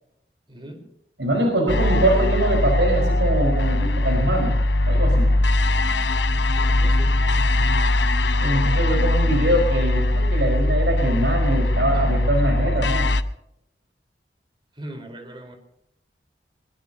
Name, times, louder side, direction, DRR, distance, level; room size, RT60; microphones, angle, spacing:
voice 1, 0.5-0.9 6.6-7.2 11.6-12.1 14.7-15.6, right 1 dB, 30° right, 4 dB, 4.3 m, -40 dB
voice 2, 1.2-4.6 4.9-5.3 8.4-13.1, right 1 dB, 85° right, 2 dB, 4.8 m, -23 dB
sound 1, 1.7-13.2, left 1 dB, 80° left, 0.8 m, -20 dB
22.0 x 22.0 x 2.9 m, 0.78 s
head